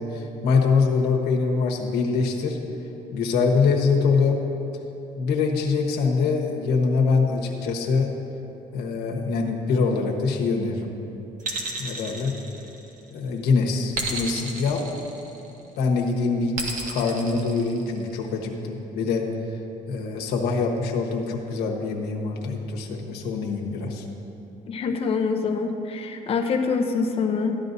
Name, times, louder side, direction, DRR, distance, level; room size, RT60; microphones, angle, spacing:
voice 1, 0.0-2.6 3.1-4.4 5.2-8.1 8.7-10.9 11.8-12.4 13.1-14.8 15.8-19.3 19.9-24.0, left 4 dB, 90° left, 1 dB, 1.2 m, -24 dB
sound 1, 11.4-13.1 13.9-15.6 16.6-18.2, right 3 dB, 55° right, 1.3 m, -32 dB
voice 2, 24.7-27.6, left 5 dB, 35° left, 4 dB, 0.7 m, -25 dB
13.0 x 10.0 x 2.7 m, 3.0 s
cardioid pair, 150°, 16 cm